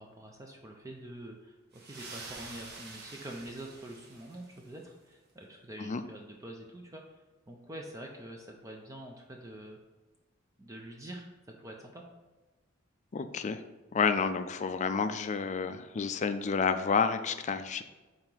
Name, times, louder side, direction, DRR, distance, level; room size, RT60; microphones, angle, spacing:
voice 1, 0.0-9.8 10.6-11.3 11.6-12.0, right 1 dB, 15° right, 1 dB, 0.5 m, -46 dB
sound 1, 1.7-4.8, right 3 dB, 55° right, 1.0 m, -47 dB
voice 2, 13.1-13.6 13.9-17.8, left 5 dB, 35° left, 9 dB, 0.4 m, -30 dB
5.7 x 3.9 x 4.6 m, 1.2 s
head